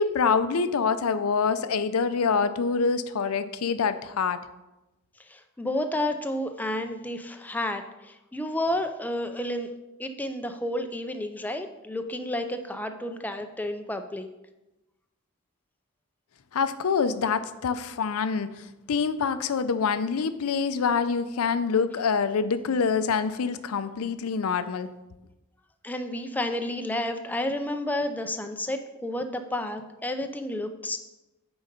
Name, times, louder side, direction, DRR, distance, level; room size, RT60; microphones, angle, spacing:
voice 1, 0.0-4.4 16.5-24.9, left 5 dB, 80° left, 12 dB, 0.5 m, -26 dB
voice 2, 5.3-9.7 10.0-14.3 25.8-31.0, left 1 dB, 10° left, 6 dB, 0.4 m, -31 dB
9.0 x 3.9 x 5.2 m, 0.99 s
head